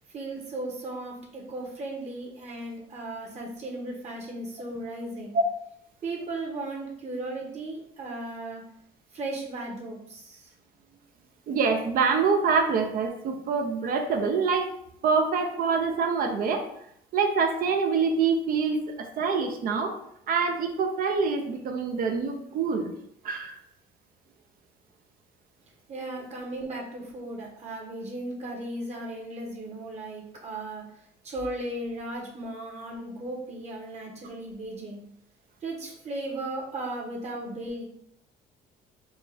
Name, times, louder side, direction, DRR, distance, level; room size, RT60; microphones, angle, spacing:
voice 1, 0.1-5.3 6.0-8.6 9.1-10.5 25.9-30.8 31.2-35.0 35.6-37.8, right 2 dB, 40° right, -2 dB, 1.1 m, -36 dB
voice 2, 11.5-14.7 15.0-16.7 17.1-20.0 20.3-22.9 23.2-23.6, right 5 dB, 60° right, 5 dB, 0.6 m, -25 dB
4.3 x 2.3 x 3.4 m, 0.71 s
cardioid pair, 110°, 17 cm